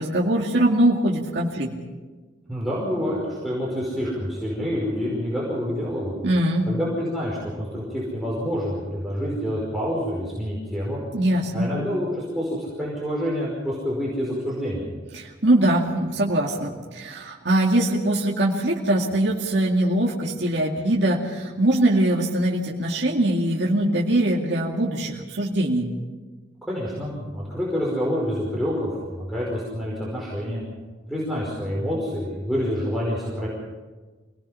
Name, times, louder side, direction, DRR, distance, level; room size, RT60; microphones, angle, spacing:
voice 1, 0.0-1.7 6.2-6.7 11.1-11.7 15.1-25.9, right 1 dB, 70° right, -2 dB, 2.3 m, -22 dB
voice 2, 2.5-6.1 6.7-11.0 11.5-14.9 26.6-30.6 31.1-33.5, equal, ahead, -6 dB, 5.2 m, -27 dB
26.5 x 19.0 x 5.8 m, 1.3 s
head